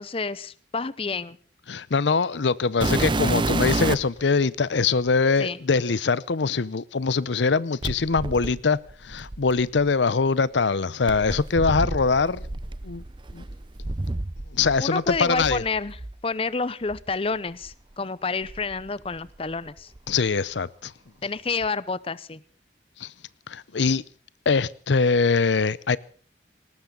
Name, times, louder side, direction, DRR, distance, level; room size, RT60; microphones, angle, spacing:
voice 1, 0.0-1.4 5.4-5.6 14.8-16.0 16.2-19.9 21.2-22.4, left 4 dB, 30° left, 0.7 m, -29 dB
voice 2, 1.7-12.5 12.8-13.0 13.3-13.4 14.5-15.6 20.1-20.9 23.0-23.1 23.5-24.0 24.5-26.0, left 4 dB, 85° left, 0.7 m, -23 dB
sound 1, 2.8-4.2 5.1-5.2 7.8-9.9 11.1-14.8 15.1-16.1 16.9-17.0 17.6-17.7 18.4-19.5 19.8-20.3 21.6-21.7, right 2 dB, 25° right, 0.7 m, -29 dB
19.0 x 19.0 x 3.8 m
head